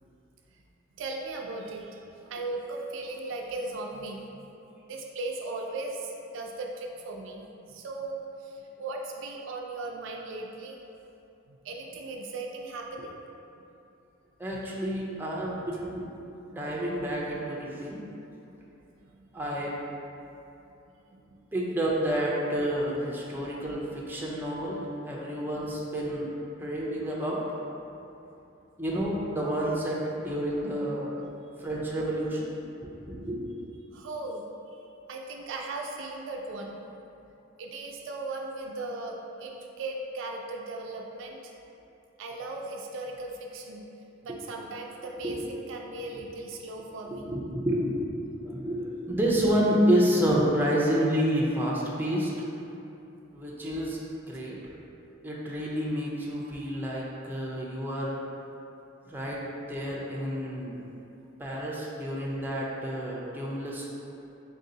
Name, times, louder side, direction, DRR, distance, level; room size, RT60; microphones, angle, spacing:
voice 1, 1.0-4.5 4.9-10.8 11.5-13.1 19.0-19.2 21.1-21.5 28.1-28.2 31.5-31.6 33.9-34.4 35.1-36.8 37.6-41.7 42.2-43.9 44.2-47.2 53.1-53.2 54.3-54.4, right 2 dB, 65° right, 1 dB, 0.4 m, -38 dB
voice 2, 14.4-16.1 16.5-18.1 19.3-19.8 21.5-27.4 28.8-31.2 31.6-32.5 32.8-33.5 44.3-44.4 45.2-45.4 46.1-46.2 47.1-52.3 53.3-54.6 55.2-58.2 59.1-59.4 59.7-60.8 61.4-63.9, equal, 10° right, -5 dB, 0.5 m, -29 dB
3.9 x 2.7 x 3.8 m, 2.8 s
head